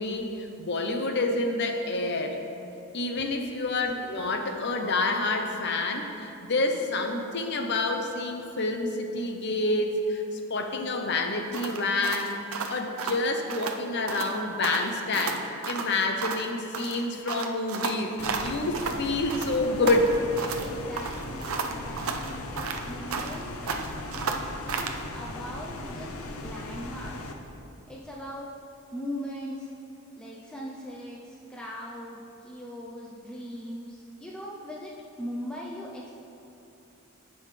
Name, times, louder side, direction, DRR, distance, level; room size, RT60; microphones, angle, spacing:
voice 1, 0.0-2.4 2.9-12.4 12.7-20.2 32.8-32.9, left 2 dB, 50° left, 5 dB, 0.7 m, -28 dB
voice 2, 3.1-3.4 20.5-23.6 24.1-27.4 27.9-28.5 28.9-29.7 30.2-36.1, equal, 5° left, -4 dB, 0.5 m, -40 dB
sound 1, 11.5-13.8 14.1-14.4 14.6-16.5 16.7-19.0 19.3-20.7 21.0-23.4 23.7-25.0, right 5 dB, 75° right, 0.6 m, -33 dB
sound 2, 18.2-27.3, left 2 dB, 80° left, 0.7 m, -38 dB
16.0 x 5.5 x 3.3 m, 2.8 s
head